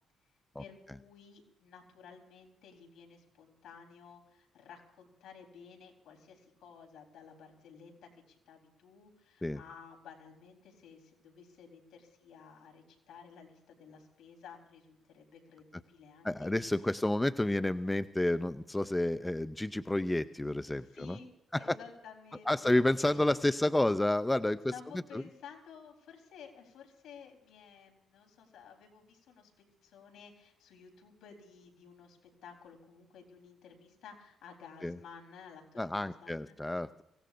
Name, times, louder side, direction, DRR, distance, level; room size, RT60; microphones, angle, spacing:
voice 1, 0.6-16.5 20.8-21.3 21.6-23.2 24.7-29.5 29.8-36.5, left 6 dB, 75° left, 3 dB, 3.9 m, -54 dB
voice 2, 16.2-21.2 21.5-21.8 22.5-24.7 25.1-25.2 34.8-35.0 35.8-37.0, left 1 dB, 10° left, 12 dB, 0.5 m, -30 dB
24.5 x 17.0 x 2.6 m, 0.83 s
cardioid pair, 90°, 0 cm